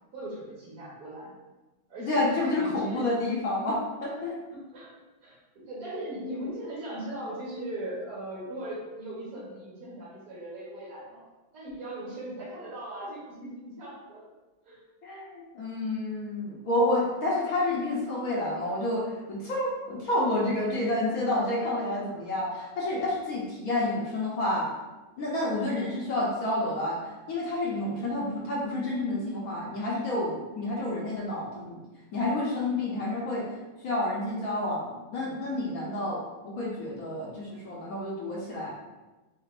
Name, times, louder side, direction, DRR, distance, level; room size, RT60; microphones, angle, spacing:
voice 1, 0.1-1.3 1.9-3.1 4.5-4.9 5.2-11.2 11.5-14.2 14.6-14.8, right 1 dB, 50° right, -8 dB, 1.6 m, -39 dB
voice 2, 2.0-4.4 15.0-24.7 25.2-31.8 32.1-33.4 33.8-36.2 36.4-38.7, left 1 dB, 60° left, -4 dB, 1.1 m, -29 dB
7.3 x 2.5 x 2.5 m, 1.2 s
omnidirectional pair, 2.1 m